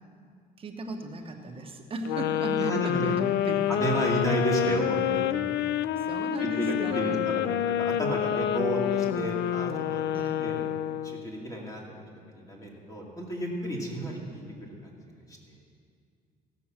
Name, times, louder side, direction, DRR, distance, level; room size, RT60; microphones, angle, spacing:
voice 1, 0.6-3.8 5.9-7.3 10.1-10.4, right 2 dB, 35° right, 3 dB, 1.3 m, -36 dB
sound 1, 2.0-11.3, left 11 dB, 75° left, 0.4 m, -28 dB
voice 2, 2.6-3.1 3.7-5.5 6.4-7.4 7.8-10.0 10.4-10.6 11.0-11.8 12.3-14.4 14.8-14.9 15.3-15.5, right 1 dB, 20° left, -2 dB, 2.5 m, -32 dB
16.0 x 7.1 x 6.0 m, 2.2 s
cardioid pair, 110°, 17 cm